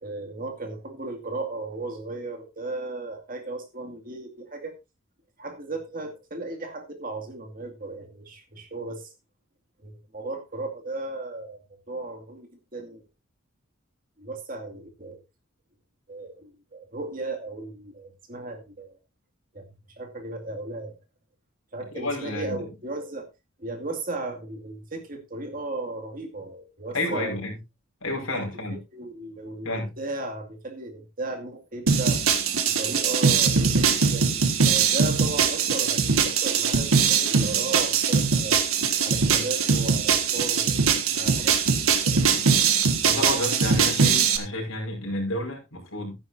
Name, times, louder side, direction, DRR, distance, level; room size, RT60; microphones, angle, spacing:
voice 1, 0.0-4.8 5.4-9.1 9.8-11.6 11.9-13.0 14.2-15.2 16.1-18.9 19.5-21.0 21.7-23.3 23.6-27.3 28.7-32.2 32.8-38.6 39.0-42.4, right 2 dB, 40° right, 4 dB, 2.3 m, -36 dB
voice 2, 21.9-22.6 26.9-27.6 28.0-28.8 29.6-29.9 43.0-46.2, left 1 dB, 75° left, 1 dB, 5.3 m, -30 dB
sound 1, 31.9-44.4, right 6 dB, 90° right, 1.6 m, -22 dB
13.5 x 10.5 x 2.7 m, 0.25 s
head